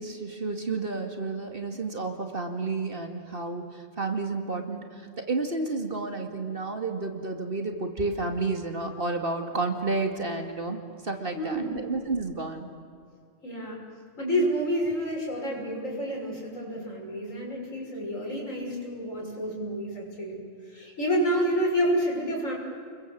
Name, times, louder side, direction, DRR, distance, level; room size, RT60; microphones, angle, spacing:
voice 1, 0.0-4.8 5.3-10.8 11.0-12.7, right 3 dB, 45° right, 4 dB, 2.5 m, -31 dB
voice 2, 11.3-11.7 13.4-13.8 14.2-22.5, equal, 75° left, -1 dB, 6.7 m, -29 dB
30.0 x 22.5 x 7.7 m, 2.3 s
omnidirectional pair, 1.4 m